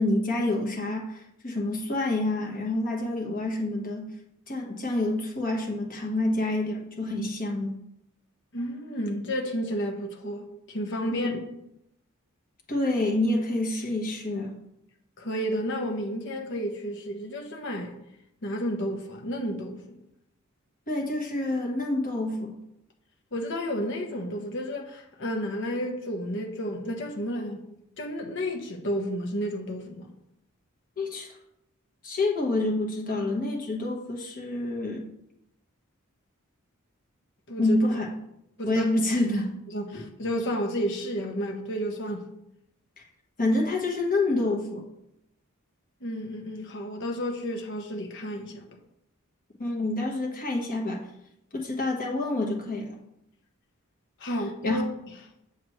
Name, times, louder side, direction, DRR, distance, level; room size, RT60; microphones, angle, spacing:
voice 1, 0.0-4.1 4.5-7.8 11.1-11.4 12.7-14.5 20.9-22.6 31.0-31.3 32.0-35.1 37.6-38.1 38.7-39.5 39.9-40.0 43.4-44.8 49.6-51.0 51.5-52.9 54.6-54.8, left 2 dB, 40° left, 1.3 m, -27 dB
voice 2, 8.5-11.3 15.2-18.0 18.4-20.0 23.3-27.6 28.0-30.1 37.5-37.8 38.6-38.9 39.7-42.3 46.0-48.7 54.2-54.8, equal, 60° left, 1.3 m, -31 dB
7.8 x 7.2 x 3.1 m
head